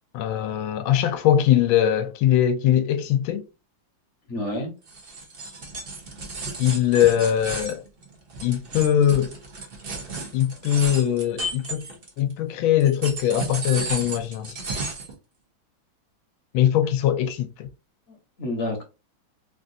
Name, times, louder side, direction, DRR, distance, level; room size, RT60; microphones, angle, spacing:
voice 1, 0.1-3.4 6.6-7.8 8.4-9.4 10.3-11.9 12.2-14.6 16.5-17.7, left 10 dB, 85° left, 1.4 m, -21 dB
voice 2, 4.3-4.7 18.1-18.8, left 1 dB, 45° left, 1.1 m, -29 dB
sound 1, 4.9-12.3 12.8-15.1, right 2 dB, 45° right, 0.7 m, -34 dB
3.7 x 2.5 x 2.6 m
omnidirectional pair, 2.2 m